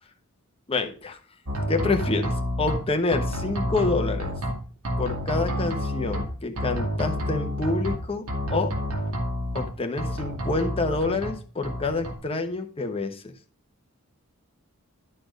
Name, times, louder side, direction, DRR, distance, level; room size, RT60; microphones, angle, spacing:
voice 1, 0.7-1.2 1.7-4.3 5.0-8.7 9.5-13.3, left 3 dB, 25° left, 5 dB, 1.0 m, -28 dB
sound 1, 1.5-2.8 3.1-4.5 4.9-6.2 6.6-8.0 8.3-9.7 10.0-11.3 11.6-12.1, equal, 75° right, 1.8 m, -29 dB
11.5 x 4.3 x 5.1 m, 0.40 s
head